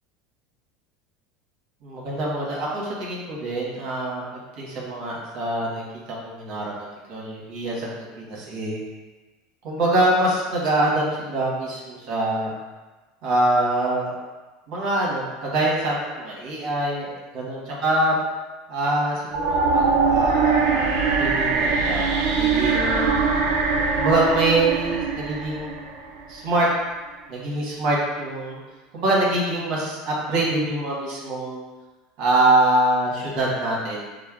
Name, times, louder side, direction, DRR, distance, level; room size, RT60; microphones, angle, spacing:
voice 1, 1.8-4.2 4.6-8.8 9.6-12.5 13.2-14.1 14.7-18.2 18.7-23.1 24.0-25.7 26.3-26.7 27.3-28.6 28.9-31.6 32.2-34.1, right 1 dB, 60° right, -5 dB, 1.3 m, -24 dB
sound 1, 19.3-26.4, right 4 dB, 80° right, 0.5 m, -22 dB
6.2 x 2.1 x 2.4 m, 1.2 s
supercardioid pair, 130°, 0 cm